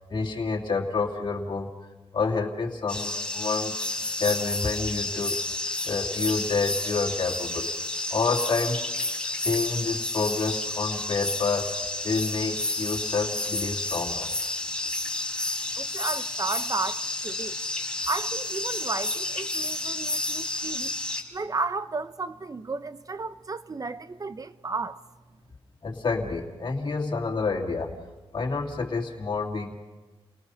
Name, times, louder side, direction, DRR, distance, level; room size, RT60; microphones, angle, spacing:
voice 1, 0.0-1.7 2.1-3.8 4.2-5.4 5.8-7.7 8.1-8.8 9.3-14.3 25.8-27.9 28.3-29.7, left 4 dB, 45° left, 2.8 m, -28 dB
sound 1, 2.9-21.2, left 2 dB, 10° left, 4.1 m, -30 dB
voice 2, 15.8-17.6 18.1-20.9 21.3-25.0, right 3 dB, 35° right, 0.9 m, -33 dB
30.0 x 19.0 x 5.7 m
cardioid pair, 75°, 10 cm